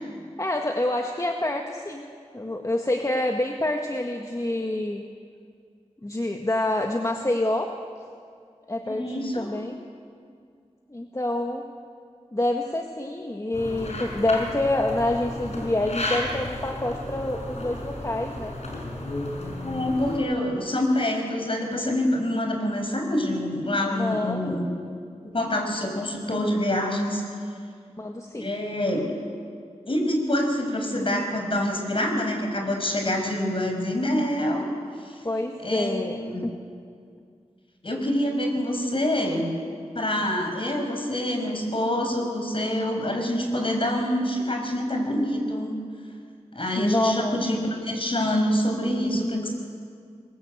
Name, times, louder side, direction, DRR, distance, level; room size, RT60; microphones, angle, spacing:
voice 1, 0.4-2.1 2.3-5.0 6.0-7.7 8.7-9.8 10.9-11.6 12.3-18.5 23.8-24.5 28.0-28.5 35.2-36.5 46.7-47.4 49.1-49.5, left 1 dB, 25° left, 2 dB, 1.7 m, -27 dB
voice 2, 8.8-9.5 19.6-24.7 25.2-27.2 28.3-29.0 29.9-34.7 35.0-35.1 35.6-36.4 37.8-39.5 39.9-45.8 46.5-47.6 47.8-49.5, left 1 dB, 50° left, 3 dB, 5.8 m, -26 dB
sound 1, 13.5-20.2, left 1 dB, 65° left, 5.8 m, -33 dB
22.5 x 21.5 x 8.1 m, 2.2 s
cardioid pair, 45°, 12 cm